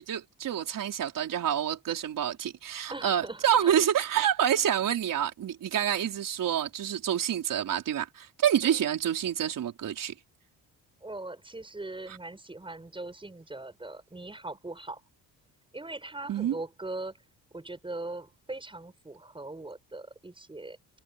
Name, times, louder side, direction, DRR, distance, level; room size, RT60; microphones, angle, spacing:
voice 1, 0.0-10.1 16.3-16.6, right 10 dB, 65° right, 5.0 m, -28 dB
voice 2, 2.9-3.9 8.6-8.8 11.0-15.0 15.7-17.1 17.5-20.8, right 2 dB, 15° right, 7.2 m, -40 dB
cardioid pair, 120°, 36 cm